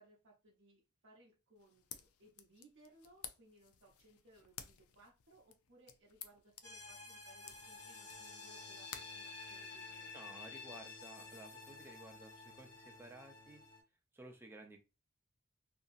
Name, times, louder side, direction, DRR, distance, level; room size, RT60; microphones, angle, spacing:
voice 1, 0.0-10.2, right 1 dB, 55° right, -3 dB, 0.7 m, -65 dB
sound 1, 1.6-10.1, left 9 dB, 75° left, 0.4 m, -55 dB
sound 2, 6.6-13.8, left 3 dB, 35° left, 1.2 m, -51 dB
voice 2, 10.1-13.6 14.1-14.8, right 2 dB, 10° right, 2 dB, 0.5 m, -55 dB
2.8 x 2.6 x 2.4 m, 0.29 s
head